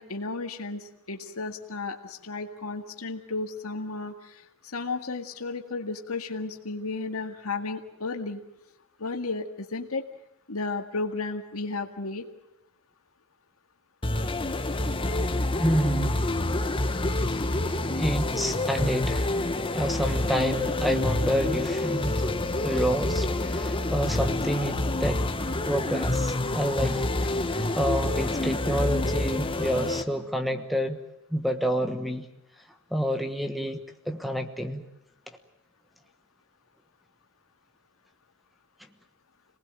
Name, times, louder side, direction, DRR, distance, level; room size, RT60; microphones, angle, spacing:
voice 1, 0.0-4.5 4.7-8.4 9.0-10.1 10.5-12.3, left 3 dB, 85° left, 5 dB, 2.0 m, -33 dB
sound 1, 14.0-30.0, left 2 dB, 25° left, 1.3 m, -27 dB
voice 2, 15.6-16.2 17.3-17.5 17.9-19.3 19.7-25.3 25.7-31.0 31.3-32.3 32.9-34.8, equal, ahead, 8 dB, 1.3 m, -29 dB
27.0 x 19.5 x 8.7 m, 0.83 s
head